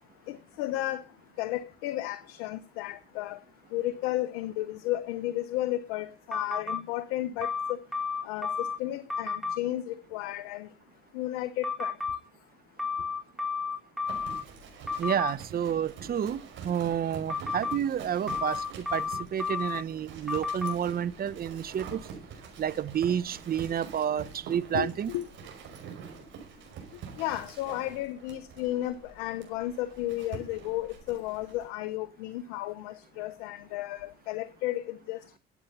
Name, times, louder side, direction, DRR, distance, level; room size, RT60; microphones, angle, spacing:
voice 1, 0.3-1.0 1.4-3.4 3.7-7.8 8.2-10.7 11.1-12.0 24.7-25.3 27.2-35.4, left 15 dB, 85° left, 0.9 m, -33 dB
sound 1, 6.3-6.8 7.4-8.8 9.1-9.6 11.6-12.2 12.8-14.4 14.9-15.3 17.3-17.8 18.3-19.8 20.3-20.7, left 5 dB, ahead, 4.6 m, -31 dB
Livestock farm animals working animals, 14.0-31.6, right 6 dB, 65° right, 5.5 m, -46 dB
voice 2, 15.0-22.0 22.6-25.1, right 9 dB, 45° right, 1.0 m, -30 dB
14.5 x 8.6 x 5.7 m
supercardioid pair, 70°, 21 cm